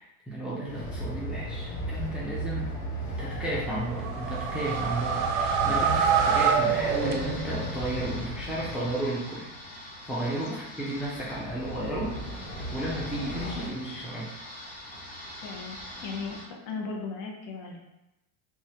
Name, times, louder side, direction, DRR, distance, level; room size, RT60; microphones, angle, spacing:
voice 1, 0.0-2.7 3.1-9.5 10.0-14.3, right 1 dB, 5° right, -6 dB, 0.3 m, -33 dB
Train, 0.6-9.1 11.0-13.7, right 1 dB, 90° left, 0.8 m, -36 dB
sound 1, 3.9-7.7, right 7 dB, 65° right, 0.5 m, -26 dB
sound 2, 4.6-16.4, left 1 dB, 20° left, 0.8 m, -43 dB
voice 2, 15.4-17.8, left 4 dB, 45° left, 0 dB, 0.7 m, -37 dB
3.0 x 2.3 x 2.7 m, 0.92 s
supercardioid pair, 120°, 44 cm